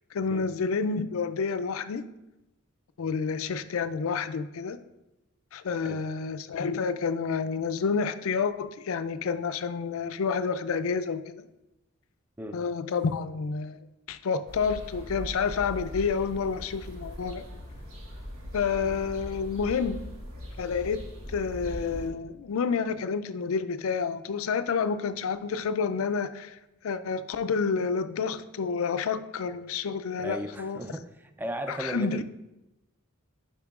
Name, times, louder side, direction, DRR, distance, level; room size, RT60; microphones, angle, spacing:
voice 1, 0.1-2.1 3.0-4.8 5.5-11.4 12.5-17.4 18.5-20.2 20.6-26.6 26.8-30.8 31.7-32.2, left 5 dB, 70° left, 11 dB, 0.4 m, -29 dB
sound 1, 14.5-22.1, equal, 75° right, 1.4 m, -40 dB
voice 2, 30.2-32.2, right 1 dB, 10° right, 8 dB, 0.3 m, -36 dB
10.5 x 5.4 x 2.4 m, 0.97 s
head